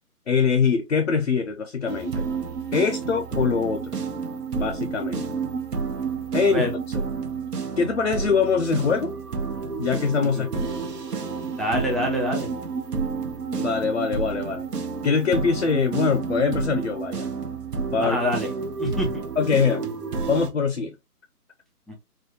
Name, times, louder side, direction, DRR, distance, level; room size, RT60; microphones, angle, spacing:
voice 1, 0.3-2.3 2.7-4.0 4.6-5.4 6.3-6.7 6.9-7.0 7.8-9.2 9.8-10.7 13.6-14.6 15.0-17.3 17.9-18.2 19.4-19.8 20.3-20.9, left 5 dB, 50° left, 0.5 m, -23 dB
sound 1, 1.9-20.5, right 5 dB, 80° right, 1.0 m, -30 dB
voice 2, 11.6-12.5 18.0-18.5 18.8-19.1 21.9-22.0, left 1 dB, ahead, 0.4 m, -25 dB
4.2 x 2.2 x 2.7 m
hypercardioid pair, 170°, 47 cm